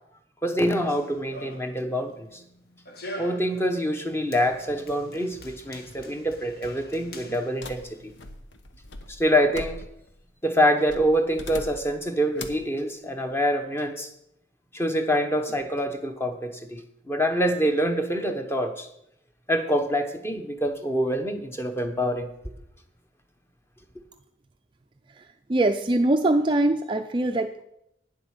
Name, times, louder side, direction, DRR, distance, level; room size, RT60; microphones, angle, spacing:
voice 1, 0.4-2.4 3.2-8.0 9.1-9.8 10.4-14.1 14.7-18.9 19.5-22.3, equal, 15° left, 6 dB, 1.0 m, -25 dB
Run, 0.7-8.3, left 1 dB, 55° left, 1.3 m, -45 dB
sound 1, 7.6-10.2 10.9-12.0 12.4-12.7, left 2 dB, 85° left, 1.1 m, -41 dB
voice 2, 25.5-27.6, right 2 dB, 25° right, 6 dB, 0.4 m, -22 dB
9.5 x 7.8 x 6.5 m, 0.78 s
head